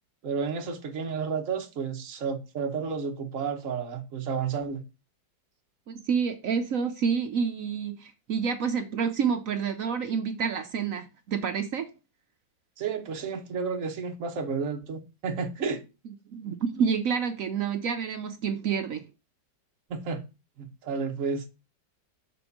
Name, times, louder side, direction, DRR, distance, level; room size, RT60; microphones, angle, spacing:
voice 1, 0.2-4.8 12.8-15.8 19.9-20.2 20.6-21.4, right 5 dB, 50° right, 1.3 m, -31 dB
voice 2, 5.9-11.9 16.1-19.0, right 6 dB, 65° right, 0.9 m, -28 dB
7.0 x 3.9 x 5.9 m
omnidirectional pair, 2.0 m